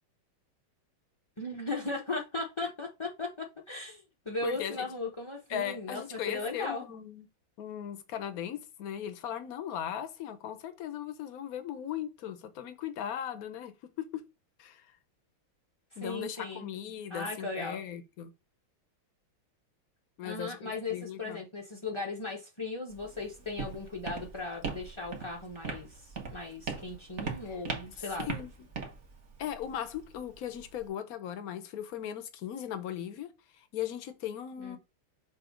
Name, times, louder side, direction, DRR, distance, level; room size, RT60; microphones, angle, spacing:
voice 1, 1.4-6.8 15.9-16.7 17.1-17.8 20.2-28.3 34.6-34.8, left 3 dB, 35° left, 0.5 m, -37 dB
voice 2, 4.4-4.8 5.5-7.3 7.6-14.3 14.6-14.9 16.0-18.3 20.2-21.4 27.4-27.6 28.2-28.5 29.4-34.8, left 10 dB, 60° left, 1.0 m, -38 dB
Walk footsteps, 22.9-30.9, right 5 dB, 40° right, 1.3 m, -40 dB
6.8 x 2.8 x 5.1 m
omnidirectional pair, 2.4 m